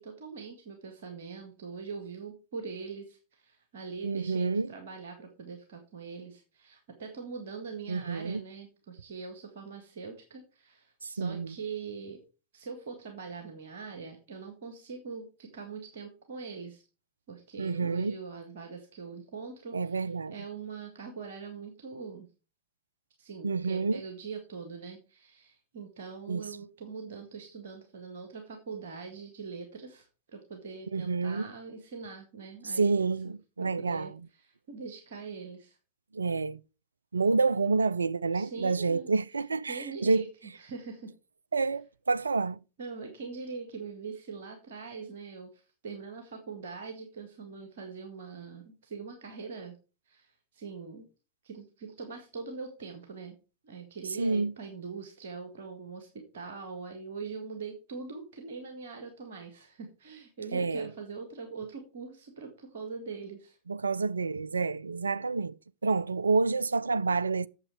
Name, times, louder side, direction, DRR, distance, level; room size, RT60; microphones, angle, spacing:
voice 1, 0.0-12.2 12.5-16.8 17.3-22.3 23.2-30.1 30.3-33.1 33.6-35.8 38.3-39.1 39.6-40.3 40.5-41.1 42.8-49.8 50.1-51.1 51.4-53.4 53.6-63.6, right 5 dB, 60° right, 1.8 m, -42 dB
voice 2, 4.0-4.7 7.9-8.4 11.0-11.6 17.6-18.1 19.7-20.4 23.4-24.0 26.3-26.5 30.9-31.5 32.7-34.3 36.1-36.6 37.1-40.3 41.5-42.6 54.2-54.5 60.5-60.9 63.7-65.6 65.8-67.5, right 4 dB, 75° right, 0.3 m, -28 dB
8.8 x 7.2 x 4.5 m
figure-of-eight pair, 90°, 0 cm